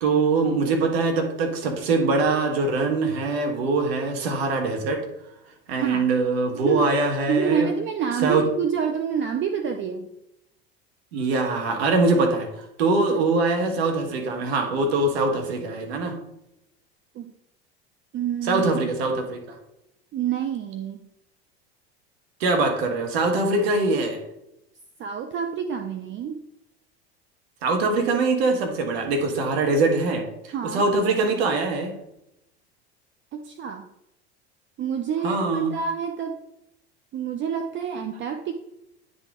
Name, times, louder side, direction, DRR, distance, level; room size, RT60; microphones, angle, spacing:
voice 1, 0.0-5.0 5.7-7.7 8.2-8.4 11.1-12.5 12.8-16.2 18.5-19.6 22.4-24.2 27.6-30.3 30.7-31.9 35.2-35.7, right 3 dB, 75° right, 4 dB, 1.5 m, -23 dB
voice 2, 5.7-6.1 6.5-6.9 7.3-10.1 13.1-13.2 17.1-17.3 18.1-18.8 20.1-21.0 25.0-26.4 30.5-30.8 33.3-33.9 34.8-36.4 37.1-38.5, right 7 dB, 35° right, 6 dB, 0.6 m, -27 dB
9.5 x 4.0 x 3.6 m, 0.84 s
hypercardioid pair, 80°, 32 cm